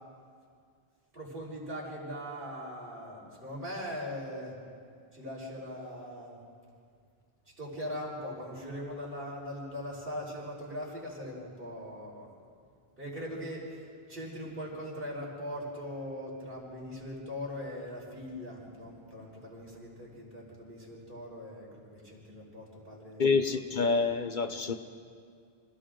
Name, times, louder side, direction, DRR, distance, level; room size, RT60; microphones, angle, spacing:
voice 1, 1.1-4.6 5.1-6.4 7.6-12.3 13.0-23.4, equal, 60° right, 5.2 m, -40 dB
voice 2, 23.2-24.7, left 4 dB, 55° left, 0.9 m, -27 dB
29.5 x 26.0 x 3.8 m
omnidirectional pair, 1.0 m